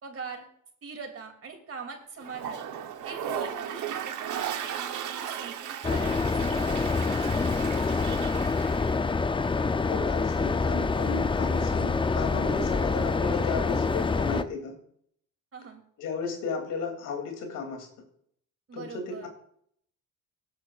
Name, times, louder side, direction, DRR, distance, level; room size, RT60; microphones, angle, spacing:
voice 1, 0.0-0.5 0.8-2.6 3.0-7.2 15.5-15.8 18.7-19.3, right 5 dB, 50° right, 4 dB, 2.7 m, -42 dB
Toilet flush, 2.2-9.0, right 9 dB, 80° right, 1.1 m, -36 dB
sound 1, 5.8-14.4, left 4 dB, 15° left, 0.5 m, -26 dB
voice 2, 9.9-14.7 16.0-17.9 18.7-19.3, left 4 dB, 90° left, 3 dB, 2.8 m, -34 dB
18.0 x 8.7 x 2.4 m, 0.66 s
cardioid pair, 90°, 30 cm